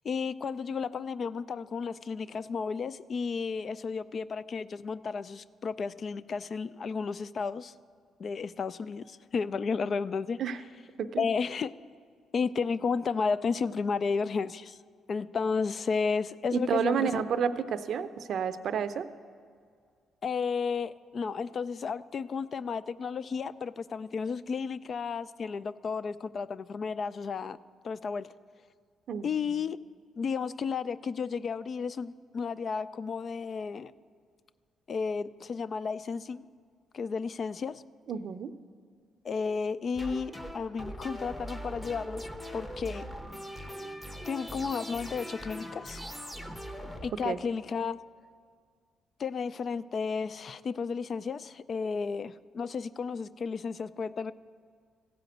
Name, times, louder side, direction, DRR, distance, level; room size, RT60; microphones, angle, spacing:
voice 1, 0.0-7.7 8.2-10.4 11.2-11.7 12.3-14.8 15.1-17.2 20.2-27.6 27.8-28.3 29.2-29.8 30.2-33.9 34.9-36.5 36.9-37.8 39.2-42.3 42.5-43.1 44.3-46.0 47.0-48.0 49.2-54.3, left 5 dB, 50° left, 17 dB, 0.3 m, -33 dB
voice 2, 16.5-19.1 29.1-29.3 38.1-38.5 47.2-47.4, right 7 dB, 65° right, 11 dB, 0.5 m, -30 dB
sound 1, 39.9-47.7, equal, 10° left, 0.9 m, -41 dB
15.0 x 5.1 x 7.9 m, 2.1 s
cardioid pair, 90°, 0 cm